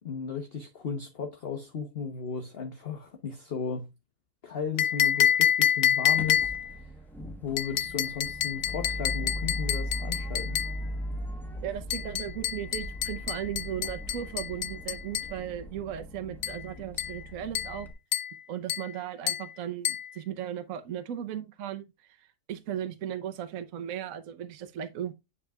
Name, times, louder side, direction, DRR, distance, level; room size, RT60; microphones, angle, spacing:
voice 1, 0.0-3.9 4.4-6.9 7.4-10.6, left 6 dB, 40° left, 1.1 m, -35 dB
sound 1, 4.8-6.7 7.6-10.8 11.9-15.4 16.4-16.6 17.0-17.2 17.5-17.8 18.1-18.4 18.7-18.9 19.3-19.5 19.8-20.1, left 10 dB, 65° left, 0.7 m, -28 dB
sound 2, 6.2-17.9, equal, ahead, 0.7 m, -38 dB
voice 2, 11.6-17.9 18.5-25.1, right 10 dB, 60° right, 1.1 m, -36 dB
9.8 x 5.5 x 2.3 m
omnidirectional pair, 1.7 m